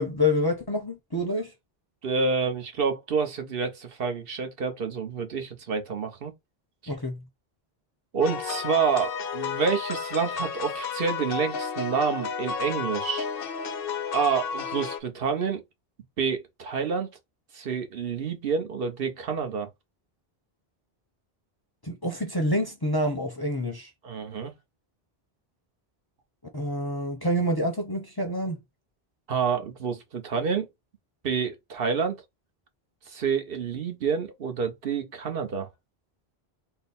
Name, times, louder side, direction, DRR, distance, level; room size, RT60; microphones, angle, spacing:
voice 1, 0.0-1.5 6.9-7.2 21.8-23.9 26.5-28.6, left 1 dB, 25° left, 0.6 m, -27 dB
voice 2, 2.0-6.3 6.8-6.9 8.1-13.2 14.1-15.6 16.2-17.1 17.5-19.7 24.0-24.5 29.3-30.7 31.2-32.2 33.1-35.7, right 5 dB, 65° right, 1.0 m, -28 dB
sound 1, 8.2-15.0, left 5 dB, 65° left, 0.7 m, -32 dB
3.9 x 2.0 x 3.9 m
omnidirectional pair, 1.0 m